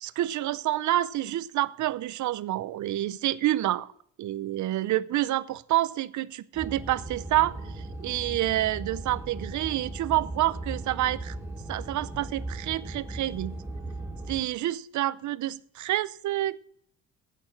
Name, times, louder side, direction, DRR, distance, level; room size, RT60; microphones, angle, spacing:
voice 1, 0.0-3.9 4.2-11.4 11.7-13.6 14.3-16.6, right 14 dB, 75° right, 0.7 m, -28 dB
sound 1, 6.5-14.4, right 2 dB, 10° right, 4.1 m, -38 dB
11.5 x 8.8 x 6.0 m
cardioid pair, 90°, 30 cm